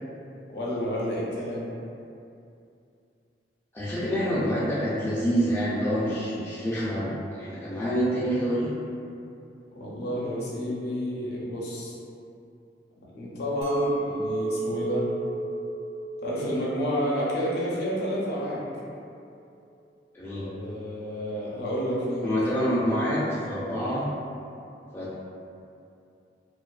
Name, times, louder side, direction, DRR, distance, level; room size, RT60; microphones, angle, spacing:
voice 1, 0.5-1.7 9.7-12.0 13.0-15.1 16.2-18.6 20.4-22.4, equal, 65° left, -6 dB, 0.5 m, -30 dB
voice 2, 3.7-8.7 20.1-20.5 22.2-24.1 24.9-25.2, equal, 15° left, -10 dB, 0.3 m, -27 dB
Chink clink, 13.6-18.8, right 2 dB, 70° right, 0.7 m, -32 dB
2.3 x 2.3 x 2.3 m, 2.6 s
head